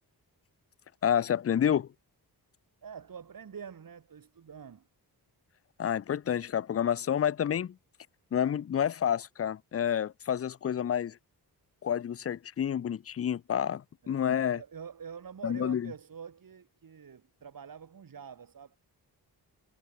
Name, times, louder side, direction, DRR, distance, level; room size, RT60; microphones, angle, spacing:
voice 1, 1.0-1.9 5.8-7.8 8.3-11.2 11.8-14.6 15.4-15.9, left 9 dB, 35° left, 0.5 m, -29 dB
voice 2, 2.8-4.9 14.0-18.8, right 7 dB, 55° right, 2.4 m, -46 dB
wide cardioid pair, 125°, 40 cm